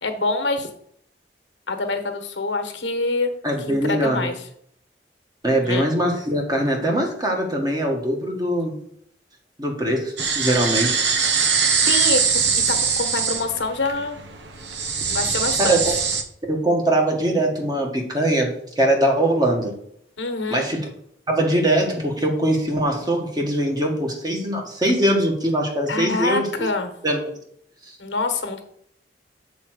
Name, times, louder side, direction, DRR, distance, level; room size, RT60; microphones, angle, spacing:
voice 1, 0.0-0.7 1.7-3.3 3.7-4.5 5.6-5.9 11.8-12.2 12.5-14.2 15.1-16.0 20.2-20.7 25.9-26.9 28.0-28.6, left 3 dB, 90° left, 6 dB, 1.3 m, -25 dB
voice 2, 3.4-4.3 5.4-8.7 9.6-11.0 11.4-11.5 15.0-15.2 15.6-15.8 16.5-19.7 20.5-20.8 21.3-26.7 27.0-27.4, right 1 dB, 25° right, 1 dB, 1.7 m, -22 dB
sound 1, 10.2-16.2, right 6 dB, 75° right, 1.0 m, -22 dB
7.0 x 4.6 x 6.4 m, 0.69 s
head